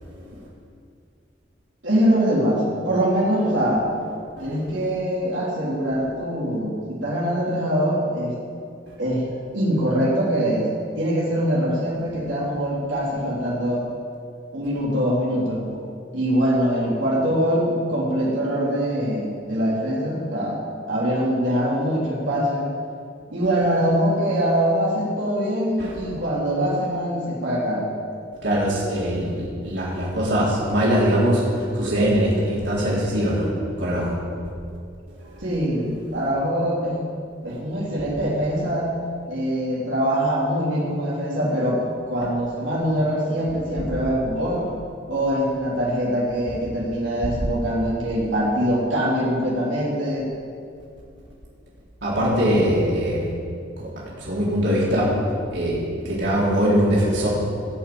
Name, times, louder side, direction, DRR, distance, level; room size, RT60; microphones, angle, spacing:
voice 1, 1.8-3.9 4.4-8.3 9.0-9.3 9.5-10.7 11.0-13.9 14.5-15.6 16.1-20.6 20.9-22.7 23.3-27.9 35.4-37.0 37.4-39.0 39.3-41.8 42.1-44.7 45.1-50.3, equal, 85° right, -6 dB, 3.5 m, -23 dB
voice 2, 28.4-33.5 33.8-34.1 35.3-35.4 47.2-47.3 52.0-53.3 53.8-55.1 55.5-57.3, equal, 70° right, -7 dB, 3.9 m, -22 dB
18.0 x 6.0 x 8.8 m, 2.3 s
head